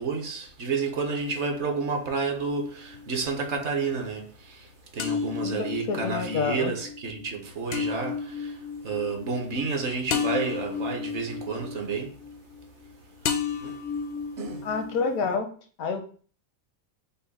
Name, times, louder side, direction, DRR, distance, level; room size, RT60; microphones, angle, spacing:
voice 1, 0.0-12.2 13.2-13.8 14.4-14.7, right 4 dB, 60° right, 1.0 m, -31 dB
sound 1, 2.5-3.4 5.0-12.9 13.2-15.3, left 6 dB, 65° left, 0.6 m, -33 dB
voice 2, 5.4-6.7 14.6-15.5 15.8-16.1, left 5 dB, 85° left, 1.2 m, -28 dB
5.5 x 2.1 x 4.0 m
omnidirectional pair, 1.5 m